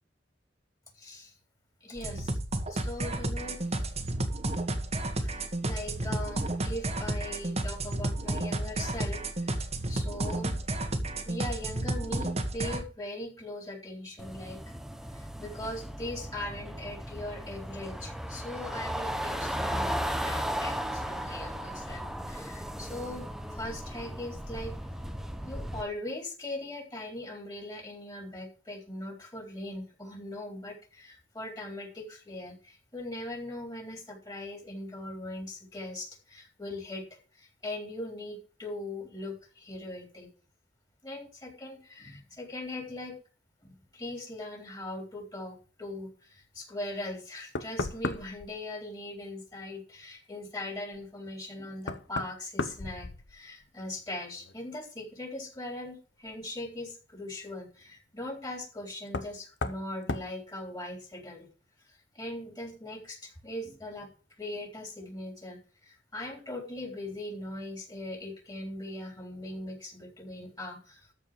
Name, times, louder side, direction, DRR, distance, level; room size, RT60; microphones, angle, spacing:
voice 1, 0.9-1.3 1.8-2.4 2.7-3.6 5.2-10.6 11.0-14.7 15.1-24.7 25.4-40.3 41.0-43.2 43.6-61.5 61.8-64.1 64.4-71.1, left 1 dB, 20° left, 3 dB, 3.4 m, -40 dB
sound 1, 2.0-12.8, right 1 dB, 35° right, 1.5 m, -32 dB
sound 2, 14.2-25.8, equal, ahead, 0.9 m, -36 dB
Knock, 47.1-47.2 47.6-48.5 50.9-51.0 51.8-53.7 54.0-54.6 56.3-56.4 59.1-59.4 59.6-59.8 60.1-60.3, left 3 dB, 70° left, 1.0 m, -35 dB
13.5 x 5.0 x 7.4 m, 0.38 s
head